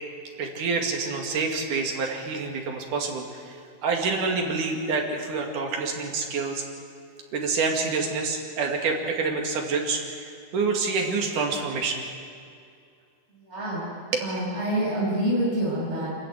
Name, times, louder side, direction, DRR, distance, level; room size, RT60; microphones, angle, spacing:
voice 1, 0.4-3.6 3.8-6.6 7.3-12.0 14.1-14.2, right 4 dB, 75° right, 2 dB, 3.9 m, -27 dB
voice 2, 13.3-13.9 14.2-16.1, right 1 dB, 20° right, -7 dB, 7.0 m, -27 dB
26.0 x 14.0 x 9.6 m, 2.3 s
omnidirectional pair, 3.7 m